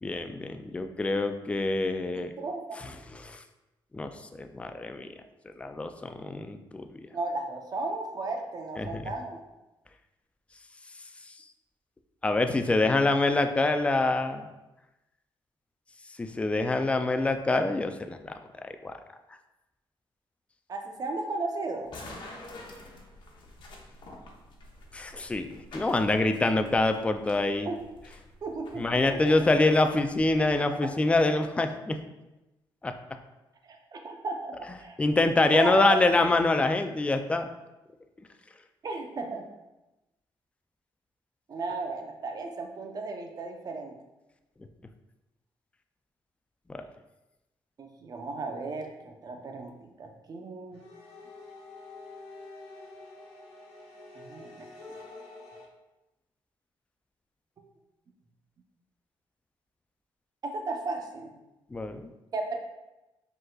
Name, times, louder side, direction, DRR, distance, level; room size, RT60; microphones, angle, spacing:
voice 1, 0.0-2.3 3.2-3.4 3.9-5.1 5.6-7.1 8.8-9.0 12.2-14.5 16.2-18.9 24.9-27.7 28.8-32.0 32.8-32.9 35.0-37.5 46.7-46.8 61.7-62.1, left 2 dB, 15° left, 7 dB, 0.3 m, -26 dB
voice 2, 2.1-2.9 7.1-9.5 20.7-21.9 27.6-27.8 28.4-29.4 33.6-35.0 35.5-36.3 38.8-39.5 41.5-44.0 47.8-50.8 54.1-54.7 60.4-61.3 62.3-62.6, right 3 dB, 45° right, 3 dB, 0.7 m, -35 dB
sound 1, 21.9-30.6, left 2 dB, 60° left, 0.8 m, -48 dB
sound 2, 50.7-55.6, left 3 dB, 80° left, 1.2 m, -47 dB
5.1 x 3.9 x 2.3 m, 0.99 s
cardioid pair, 95°, 9 cm